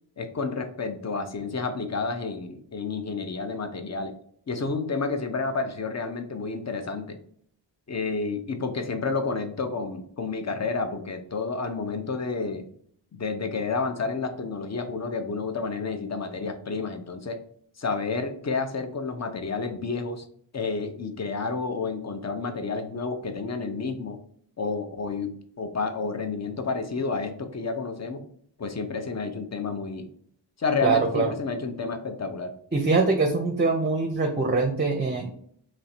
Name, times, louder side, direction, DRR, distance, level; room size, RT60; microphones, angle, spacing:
voice 1, 0.2-4.1 4.5-7.2 7.9-12.7 13.1-17.4 17.8-20.2 20.5-24.2 24.6-28.2 28.6-30.1 30.6-32.5, left 4 dB, 40° left, 7 dB, 0.6 m, -30 dB
voice 2, 30.8-31.3 32.7-35.3, right 3 dB, 25° right, 3 dB, 0.5 m, -23 dB
3.1 x 2.6 x 4.3 m, 0.62 s
wide cardioid pair, 85°, 42 cm